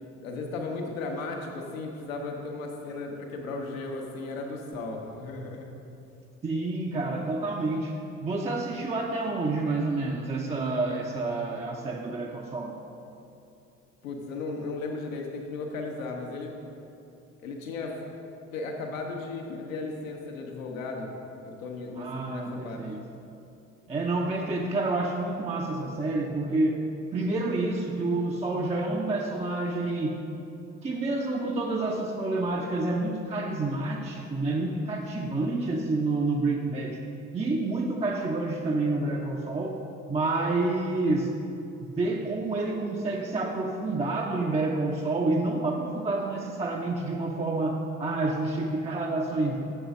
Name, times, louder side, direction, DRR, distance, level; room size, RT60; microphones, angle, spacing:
voice 1, 0.2-5.7 14.0-16.6 17.4-18.0 18.5-21.1 21.4-22.8, left 3 dB, 75° left, 1 dB, 1.0 m, -35 dB
voice 2, 6.4-12.8 21.9-23.0 23.9-26.9 27.1-30.2 30.8-37.0 37.3-39.8 40.1-41.3 41.8-49.6, right 2 dB, 15° right, 0 dB, 0.6 m, -28 dB
7.0 x 5.4 x 6.1 m, 2.8 s
figure-of-eight pair, 50°, 40 cm